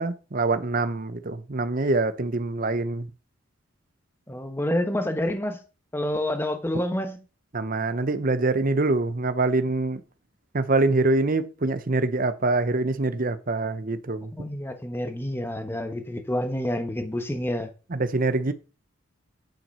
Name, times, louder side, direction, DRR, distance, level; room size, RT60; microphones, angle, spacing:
voice 1, 0.0-3.1 7.5-10.0 10.5-14.3 17.9-18.5, right 2 dB, 40° right, 0.8 m, -25 dB
voice 2, 4.3-5.6 5.9-7.2 14.3-17.7, left 1 dB, 10° left, 1.1 m, -28 dB
10.0 x 6.0 x 5.5 m
head